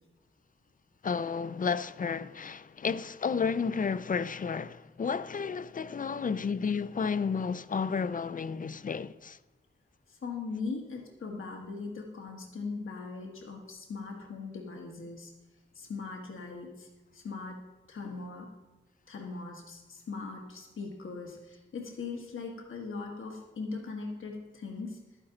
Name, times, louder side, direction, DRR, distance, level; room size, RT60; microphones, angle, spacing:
voice 1, 1.0-9.4, left 5 dB, 40° left, 0.4 m, -32 dB
voice 2, 10.1-15.3 15.7-16.9 17.1-17.6 17.9-18.5 19.1-25.0, left 4 dB, 80° left, 1.5 m, -40 dB
11.5 x 9.9 x 3.9 m
wide cardioid pair, 80°, 20 cm